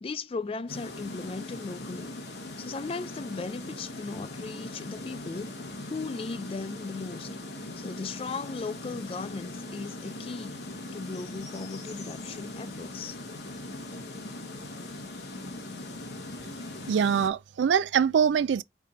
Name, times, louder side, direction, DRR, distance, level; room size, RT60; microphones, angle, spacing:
voice 1, 0.0-2.1 2.6-5.5 5.9-7.3 7.8-13.2, left 4 dB, 30° left, 0.3 m, -37 dB
sound 1, 0.7-17.3, left 2 dB, 70° left, 1.2 m, -40 dB
voice 2, 16.9-18.6, right 7 dB, 85° right, 0.3 m, -23 dB
4.2 x 3.5 x 3.6 m
head